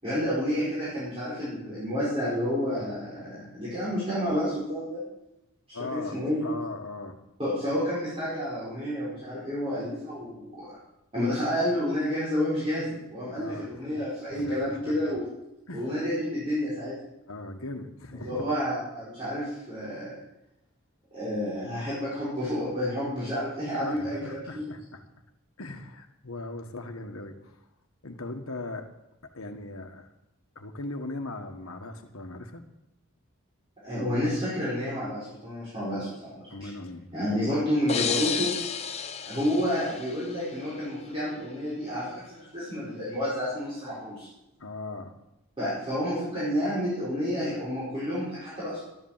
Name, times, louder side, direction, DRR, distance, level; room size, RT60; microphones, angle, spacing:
voice 1, 0.0-5.0 5.7-6.4 7.4-10.8 11.1-15.3 15.7-16.9 18.2-20.2 21.1-24.7 33.8-36.7 37.1-38.5 39.2-44.3 45.6-48.8, equal, 25° right, -11 dB, 5.3 m, -30 dB
voice 2, 5.7-7.2 13.3-14.0 14.3-15.1 15.7-15.9 17.3-18.4 23.7-25.0 25.6-27.6 28.0-28.9 29.3-30.1 30.5-32.6 36.5-37.1 44.6-45.1, left 2 dB, 75° left, 5 dB, 1.6 m, -39 dB
sound 1, 37.9-40.7, left 6 dB, 30° left, 0.7 m, -32 dB
12.5 x 10.5 x 7.4 m, 0.90 s
head